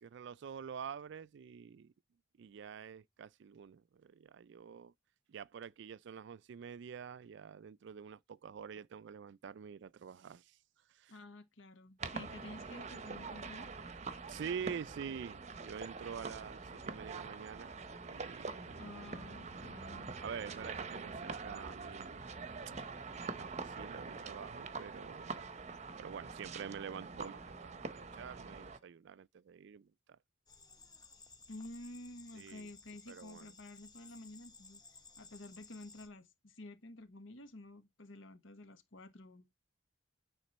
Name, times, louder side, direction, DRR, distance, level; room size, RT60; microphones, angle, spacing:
voice 1, 0.0-1.9 2.4-4.9 5.3-10.6 10.9-11.1 14.3-18.9 20.2-22.2 23.3-25.5 26.0-30.2 32.4-32.7 33.1-33.5, right 7 dB, 60° right, 0.3 m, -47 dB
voice 2, 11.1-13.7 18.8-20.1 31.5-34.8 35.2-39.5, left 2 dB, 75° left, 1.2 m, -51 dB
sound 1, 12.0-28.8, right 4 dB, 35° right, 0.7 m, -45 dB
sound 2, 30.5-36.1, left 4 dB, 20° left, 1.0 m, -58 dB
9.2 x 3.7 x 4.1 m
head